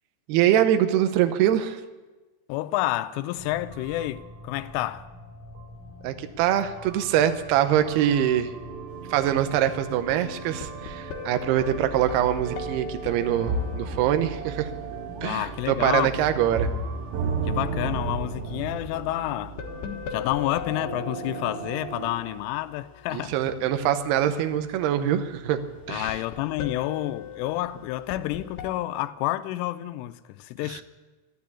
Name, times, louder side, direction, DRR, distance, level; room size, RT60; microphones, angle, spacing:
voice 1, 0.3-1.8 6.0-8.5 9.1-14.7 15.2-16.7 23.1-25.6 25.9-26.2 30.6-30.8, right 11 dB, 85° right, 2.3 m, -24 dB
voice 2, 2.5-5.1 15.2-16.1 17.4-19.6 20.1-23.3 25.9-30.8, left 15 dB, 85° left, 3.1 m, -29 dB
sound 1, 2.8-4.4 4.7-4.8 5.6-5.7 6.8-22.1, right 4 dB, 70° right, 4.0 m, -35 dB
sound 2, 3.3-18.7, equal, 20° right, 0.6 m, -46 dB
sound 3, 8.9-28.8, left 8 dB, 65° left, 2.8 m, -42 dB
13.0 x 12.0 x 8.5 m
omnidirectional pair, 5.8 m